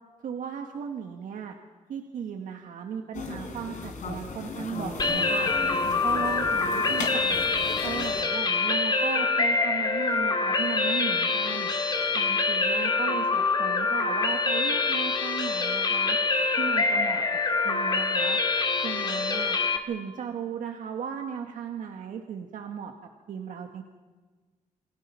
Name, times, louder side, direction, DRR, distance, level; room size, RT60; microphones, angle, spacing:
voice 1, 0.2-1.5 1.9-5.5 6.0-7.4 7.8-11.7 12.1-16.2 16.6-17.2 17.6-18.4 18.8-19.6 19.9-22.9 23.3-23.8, right 7 dB, 85° right, 3 dB, 1.7 m, -36 dB
sound 1, 3.1-8.2, left 4 dB, 75° left, 3.9 m, -36 dB
sound 2, 5.0-19.8, left 4 dB, 35° left, 1.9 m, -25 dB
28.5 x 23.0 x 5.6 m, 1.4 s
wide cardioid pair, 145°, 13 cm